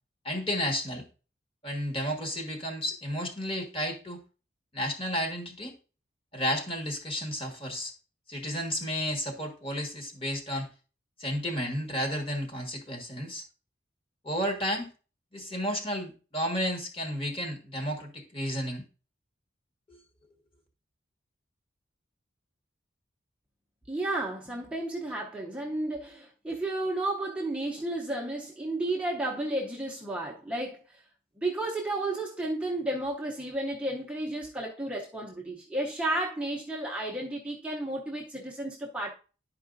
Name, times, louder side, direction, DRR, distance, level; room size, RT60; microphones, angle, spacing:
voice 1, 0.2-1.0 1.6-4.2 4.7-5.7 6.3-7.9 8.3-10.7 11.2-13.4 14.2-14.9 15.3-18.8 19.9-20.0, equal, 30° left, 1.5 m, -32 dB
voice 2, 23.9-31.0 31.4-39.1, right 1 dB, 5° right, 0.7 m, -32 dB
11.0 x 4.7 x 2.6 m
head